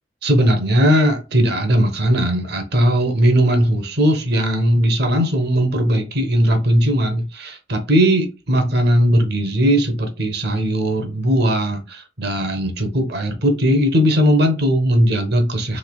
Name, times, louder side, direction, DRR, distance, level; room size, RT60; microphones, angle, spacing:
voice 1, 0.2-15.8, equal, 65° right, 0.8 m, -18 dB
3.3 x 3.2 x 2.2 m
head